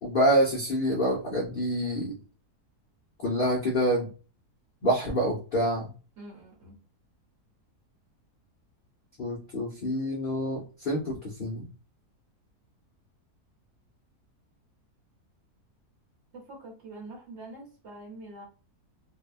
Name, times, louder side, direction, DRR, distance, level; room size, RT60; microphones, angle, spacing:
voice 1, 0.0-2.1 3.2-4.1 4.8-5.9 9.2-11.7, equal, 55° left, -4 dB, 0.5 m, -27 dB
voice 2, 6.2-6.8 16.3-18.4, right 2 dB, 50° right, -1 dB, 1.0 m, -45 dB
2.7 x 2.1 x 2.3 m, 0.36 s
omnidirectional pair, 1.7 m